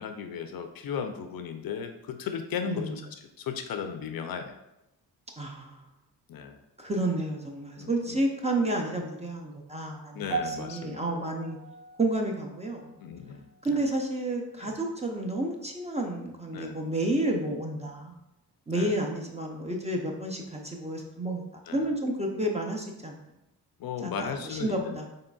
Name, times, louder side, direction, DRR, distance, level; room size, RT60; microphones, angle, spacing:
voice 1, 0.0-4.5 6.3-6.6 7.8-8.2 10.1-11.0 13.0-13.8 14.6-14.8 16.5-16.8 18.7-18.9 21.7-21.9 23.8-25.1, left 7 dB, 60° left, 7 dB, 0.5 m, -36 dB
voice 2, 2.7-3.0 5.4-5.8 6.8-11.6 12.0-12.9 13.6-18.1 18.7-21.5 21.7-23.2 24.0-25.1, right 1 dB, 15° right, 1 dB, 0.5 m, -30 dB
sound 1, 10.3-14.7 15.0-15.3 16.0-16.1, right 5 dB, 70° right, 0.8 m, -40 dB
3.9 x 3.8 x 2.3 m, 0.91 s
cardioid pair, 95°, 41 cm